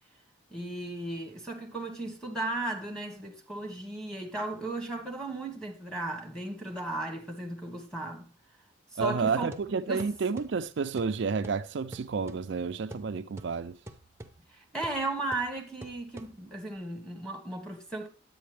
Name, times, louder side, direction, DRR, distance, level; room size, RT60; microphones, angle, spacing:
voice 1, 0.5-8.3 8.9-10.1 14.5-18.1, right 2 dB, 5° left, 1.4 m, -36 dB
sound 1, 9.0-16.7, right 1 dB, 15° right, 0.7 m, -49 dB
voice 2, 9.0-13.8, right 5 dB, 60° right, 0.4 m, -30 dB
10.0 x 8.4 x 3.3 m
head